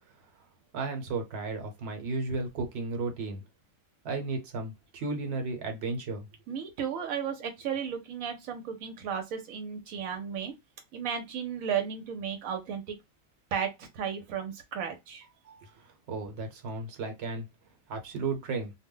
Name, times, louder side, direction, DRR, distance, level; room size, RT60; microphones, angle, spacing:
voice 1, 0.7-3.4 4.0-6.3 16.1-17.5 17.9-18.7, right 3 dB, 55° right, 1.0 m, -34 dB
voice 2, 6.5-10.5 10.9-12.9 13.5-15.7, right 7 dB, 80° right, 1.0 m, -34 dB
2.3 x 2.1 x 3.7 m
omnidirectional pair, 1.4 m